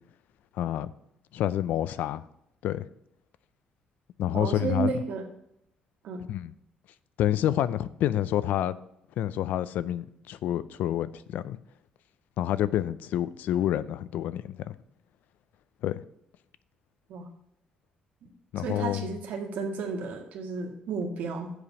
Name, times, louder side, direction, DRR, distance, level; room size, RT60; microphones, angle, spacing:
voice 1, 0.6-0.9 1.3-2.2 2.6-2.9 4.2-4.9 6.3-6.5 7.2-8.8 9.2-11.6 12.4-14.7 15.8-16.1 18.5-19.1, left 12 dB, 80° left, 0.5 m, -28 dB
voice 2, 4.3-5.3 6.0-6.3 17.1-17.3 18.2-18.3 18.6-21.5, right 4 dB, 80° right, 1.8 m, -32 dB
8.0 x 5.0 x 6.9 m
cardioid pair, 120°, 3 cm